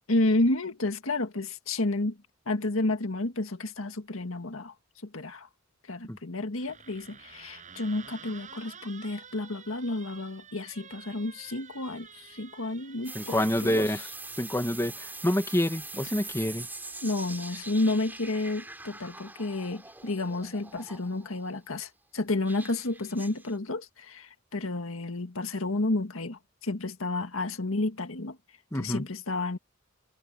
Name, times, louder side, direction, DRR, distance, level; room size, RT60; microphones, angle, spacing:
voice 1, 0.0-2.2 2.5-4.7 5.0-5.5 5.9-13.9 17.0-28.4 28.7-29.6, left 2 dB, 85° left, 1.8 m, -31 dB
sound 1, 6.6-13.6, right 7 dB, 40° right, 6.3 m, -49 dB
sound 2, 13.0-21.5 22.4-23.6, right 3 dB, 10° right, 3.1 m, -43 dB
voice 2, 13.1-14.1 14.4-16.7 28.7-29.0, left 1 dB, 15° left, 1.8 m, -27 dB
head